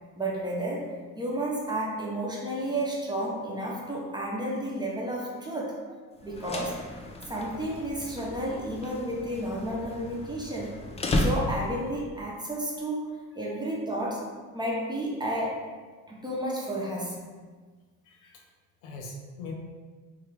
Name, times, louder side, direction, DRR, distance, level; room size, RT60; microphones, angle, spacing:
voice 1, 0.2-0.9 1.1-5.7 6.2-6.8 7.3-10.8 11.1-14.3 14.5-15.6 16.1-17.2, right 1 dB, 10° right, -4 dB, 0.8 m, -32 dB
sound 1, 6.2-12.0, left 1 dB, 15° left, 0.3 m, -33 dB
voice 2, 18.1-18.4 18.8-19.5, left 3 dB, 85° left, -1 dB, 0.6 m, -41 dB
3.2 x 2.3 x 3.2 m, 1.4 s
hypercardioid pair, 65°, 41 cm